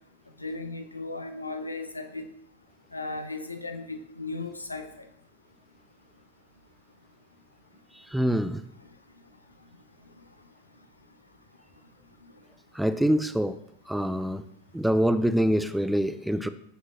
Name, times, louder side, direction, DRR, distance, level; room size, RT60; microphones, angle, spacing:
voice 1, 0.4-2.2 2.9-4.9, left 3 dB, 80° left, 6 dB, 0.8 m, -36 dB
voice 2, 8.1-8.6 12.7-13.6 13.9-14.4 14.7-16.5, equal, ahead, 12 dB, 0.4 m, -25 dB
14.5 x 6.2 x 2.6 m, 0.74 s
figure-of-eight pair, 90°, 0 cm